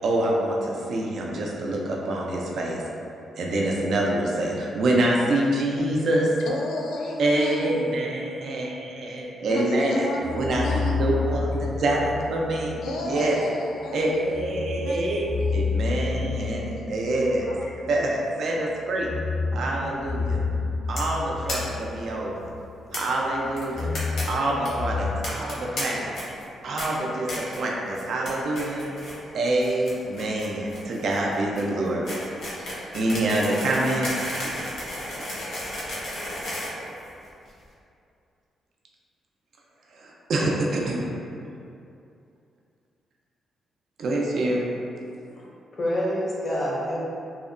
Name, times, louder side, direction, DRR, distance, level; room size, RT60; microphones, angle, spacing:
voice 1, 0.0-2.8 3.4-6.3 7.2-10.1 10.3-13.4 13.9-15.3 15.5-17.5 17.9-19.1 19.5-20.4 20.9-22.5 22.9-23.9 24.3-26.0 26.6-28.8 29.3-32.2 32.5-32.7 32.9-34.1 34.4-34.6 39.9-41.0 44.0-44.7, right 1 dB, 55° right, -2 dB, 0.3 m, -26 dB
voice 2, 6.4-8.0 9.5-11.5 12.8-14.2 14.8-16.1 16.4-16.5 16.8-16.9 17.4-17.7, left 2 dB, 90° left, -2 dB, 0.3 m, -33 dB
sound 1, 10.2-13.1 14.3-18.2 18.9-22.9 23.2-25.2, left 4 dB, 15° right, 0.7 m, -30 dB
sound 2, 21.0-21.2 21.5-21.6 21.8-21.9 22.1-22.2 22.9-23.0 23.6-24.2 24.5-24.7 25.2-25.8 26.1-26.4 26.8-26.9 27.3-27.6 27.9-28.3 28.5-29.2 29.4-37.5, left 1 dB, 70° left, 0.7 m, -33 dB
voice 3, 45.0-45.5 45.8-47.0, equal, 30° left, -5 dB, 0.5 m, -27 dB
2.7 x 2.1 x 2.4 m, 2.6 s
cardioid pair, 160°, 0 cm